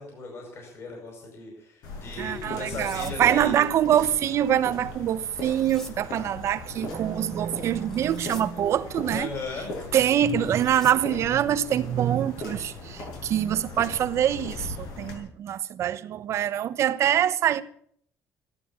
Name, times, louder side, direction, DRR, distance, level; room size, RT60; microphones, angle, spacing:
voice 1, 0.0-3.6 9.1-9.7, left 3 dB, 45° left, 5.2 m, -37 dB
sound 1, 1.8-15.1, left 3 dB, 80° left, 6.6 m, -39 dB
voice 2, 2.2-9.3 9.9-17.6, right 10 dB, 50° right, 0.9 m, -24 dB
sound 2, 2.4-3.1 5.2-5.9 7.7-8.5 10.3-10.9, left 1 dB, 10° left, 1.5 m, -45 dB
15.5 x 12.5 x 7.1 m
cardioid pair, 170°, 6 cm